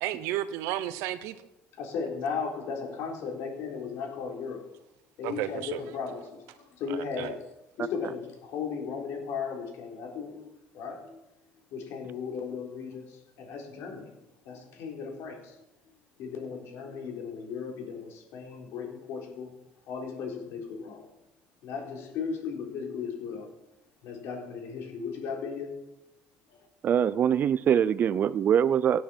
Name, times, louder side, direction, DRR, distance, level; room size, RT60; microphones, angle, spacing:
voice 1, 0.0-1.4 5.2-5.8 6.9-7.3, right 13 dB, 80° right, 13 dB, 0.9 m, -33 dB
voice 2, 1.8-4.6 5.2-7.4 7.8-10.4 10.7-11.2 11.7-14.2 14.5-15.6 16.2-19.5 19.9-21.1 21.6-23.5 24.0-25.8 26.5-26.6, left 5 dB, 70° left, 1 dB, 3.7 m, -36 dB
voice 3, 26.8-29.0, right 8 dB, 40° right, 18 dB, 0.5 m, -23 dB
17.0 x 9.3 x 4.5 m, 0.90 s
cardioid pair, 115°, 5 cm